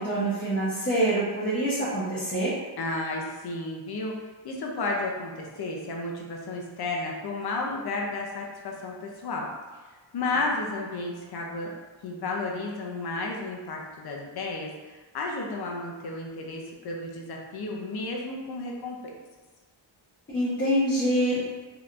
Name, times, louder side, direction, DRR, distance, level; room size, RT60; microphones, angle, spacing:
voice 1, 0.0-2.5 20.3-21.4, right 1 dB, 25° left, -10 dB, 0.9 m, -25 dB
voice 2, 2.8-4.2 4.4-9.5 10.1-11.7 12.0-19.1, left 2 dB, 55° left, -1 dB, 0.6 m, -32 dB
3.2 x 2.9 x 2.4 m, 1.3 s
wide cardioid pair, 90°, 47 cm